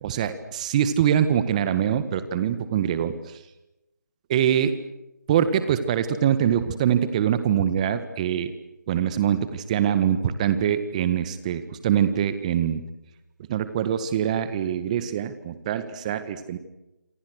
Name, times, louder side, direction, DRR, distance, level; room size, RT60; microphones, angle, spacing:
voice 1, 0.0-3.1 4.3-4.7 5.3-8.5 8.9-12.8 13.5-16.6, right 9 dB, 20° right, 12 dB, 1.6 m, -24 dB
27.5 x 26.5 x 6.5 m, 0.92 s
figure-of-eight pair, 155°, 10 cm